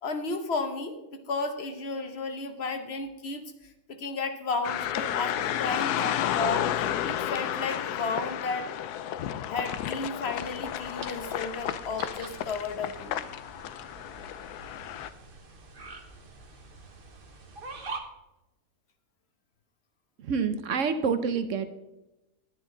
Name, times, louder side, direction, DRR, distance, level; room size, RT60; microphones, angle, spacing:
voice 1, 0.0-3.4 3.9-6.7 7.0-8.7 9.5-13.2, left 3 dB, 45° left, 8 dB, 1.1 m, -33 dB
sound 1, 4.6-15.1, left 11 dB, 75° left, 1.1 m, -32 dB
sound 2, 10.3-18.0, right 3 dB, 40° right, 1.1 m, -45 dB
voice 2, 20.2-21.7, right 6 dB, 60° right, 10 dB, 0.9 m, -27 dB
11.0 x 9.9 x 3.9 m, 0.97 s
omnidirectional pair, 1.7 m